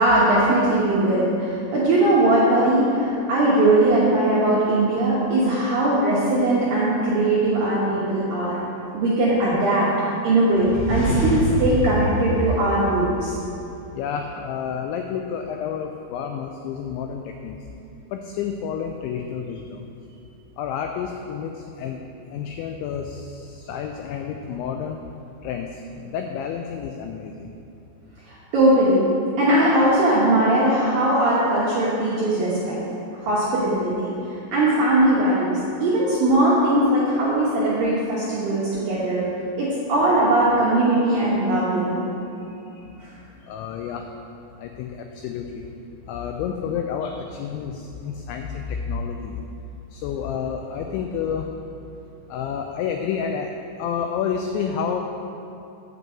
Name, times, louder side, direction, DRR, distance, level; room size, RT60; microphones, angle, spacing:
voice 1, 0.0-8.6 8.9-9.9 10.2-13.4 28.3-29.1 29.4-32.8 33.2-39.2 39.6-42.0 43.0-43.1, right 1 dB, 75° right, -8 dB, 2.1 m, -20 dB
sound 1, 10.5-13.5, right 1 dB, 60° left, 2.8 m, -26 dB
voice 2, 13.9-17.6 18.1-19.8 20.6-22.0 22.3-25.0 25.4-27.5 42.7-42.9 43.4-44.1 44.6-45.6 46.1-49.4 49.9-51.5 52.3-53.5 53.8-55.0, left 7 dB, 90° left, 4 dB, 2.6 m, -30 dB
9.1 x 5.3 x 7.7 m, 2.8 s
omnidirectional pair, 5.8 m